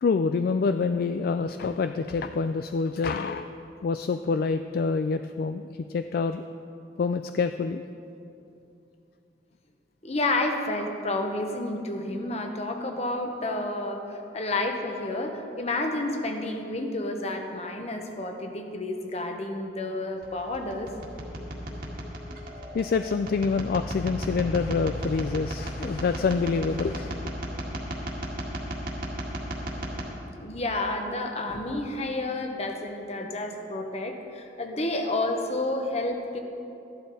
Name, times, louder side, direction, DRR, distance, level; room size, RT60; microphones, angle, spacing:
voice 1, 0.0-3.5 3.8-6.4 7.0-7.8 22.7-27.1, left 4 dB, 55° left, 9 dB, 0.3 m, -26 dB
voice 2, 10.0-20.9 30.4-36.4, left 2 dB, 35° left, 4 dB, 1.1 m, -30 dB
sound 1, 20.2-30.0, equal, 50° right, 1.9 m, -35 dB
14.0 x 11.5 x 4.1 m, 2.7 s
head